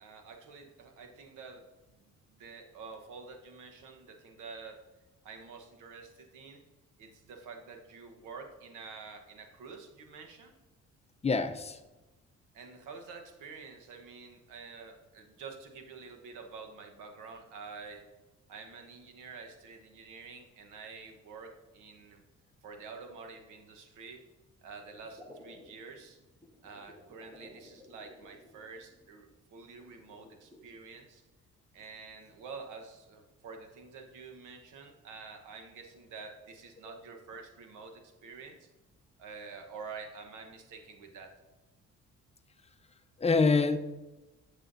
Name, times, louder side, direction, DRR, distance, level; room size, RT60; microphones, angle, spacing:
voice 1, 0.0-4.8 5.2-6.6 7.0-10.6 12.5-18.1 18.5-22.2 22.6-24.3 24.6-26.2 26.6-31.2 31.7-38.7 39.2-41.3, right 4 dB, 90° right, 4 dB, 1.1 m, -48 dB
voice 2, 11.2-11.8 43.2-43.8, left 4 dB, 20° left, 8 dB, 0.6 m, -25 dB
sound 1, 24.9-29.1 30.0-30.6, left 1 dB, 5° right, 1.6 m, -55 dB
11.0 x 7.1 x 2.6 m, 1.1 s
cardioid pair, 90°, 30 cm